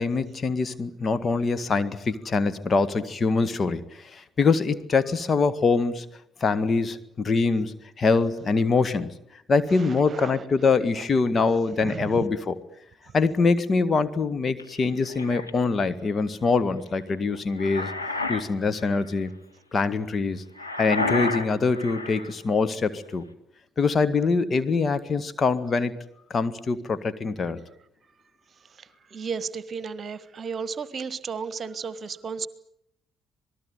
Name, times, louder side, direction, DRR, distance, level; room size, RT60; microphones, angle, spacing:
voice 1, 0.0-3.8 4.1-6.1 6.4-9.1 9.5-12.6 13.1-17.9 18.3-19.3 19.7-20.4 20.8-23.2 23.8-25.9 26.3-27.6, left 4 dB, 35° left, 16 dB, 1.9 m, -24 dB
voice 2, 9.8-10.4 11.8-12.2 28.8-32.5, right 5 dB, 40° right, 16 dB, 1.5 m, -34 dB
sound 1, 14.6-15.5 17.3-18.5 18.8-19.1 20.6-22.3, left 2 dB, 90° left, 1.5 m, -30 dB
27.0 x 19.5 x 9.3 m, 0.75 s
figure-of-eight pair, 45°, 0 cm